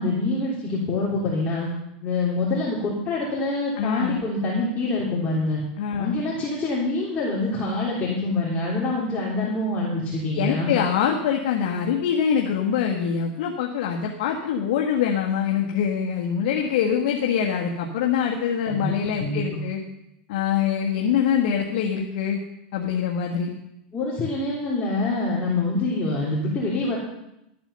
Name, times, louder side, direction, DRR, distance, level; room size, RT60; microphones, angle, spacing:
voice 1, 0.0-1.7 2.0-5.6 6.0-10.8 18.7-18.9 19.2-19.6 23.9-27.0, left 2 dB, 25° left, -6 dB, 3.4 m, -25 dB
voice 2, 3.8-4.2 5.8-6.2 10.3-19.8 20.3-22.4 22.7-23.5, left 8 dB, 65° left, 0 dB, 1.7 m, -24 dB
12.5 x 8.8 x 6.9 m, 0.85 s
supercardioid pair, 130°, 5 cm